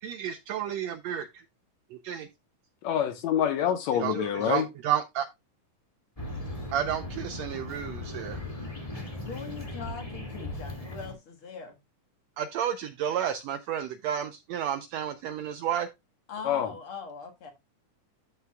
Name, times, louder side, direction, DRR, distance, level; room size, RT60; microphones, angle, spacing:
voice 1, 0.0-1.3 1.9-2.3 3.9-5.3 6.7-8.4 12.4-15.9, right 10 dB, 85° right, 1.5 m, -31 dB
voice 2, 2.8-4.7 16.4-16.7, left 9 dB, 75° left, 1.8 m, -26 dB
sound 1, 6.2-11.1, left 1 dB, 15° left, 1.7 m, -38 dB
voice 3, 9.2-11.8 16.3-17.5, left 5 dB, 50° left, 1.9 m, -41 dB
13.0 x 5.8 x 2.2 m
omnidirectional pair, 3.7 m